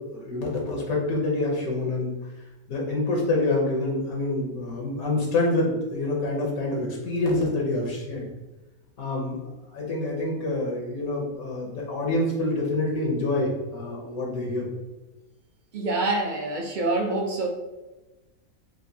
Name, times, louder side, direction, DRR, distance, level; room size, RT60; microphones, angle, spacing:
voice 1, 0.0-2.1 2.7-8.3 9.0-9.4 9.7-14.7, left 2 dB, 75° left, -2 dB, 1.3 m, -26 dB
voice 2, 15.7-17.5, right 2 dB, 60° right, 1 dB, 0.5 m, -26 dB
5.8 x 2.6 x 2.7 m, 1.1 s
omnidirectional pair, 1.5 m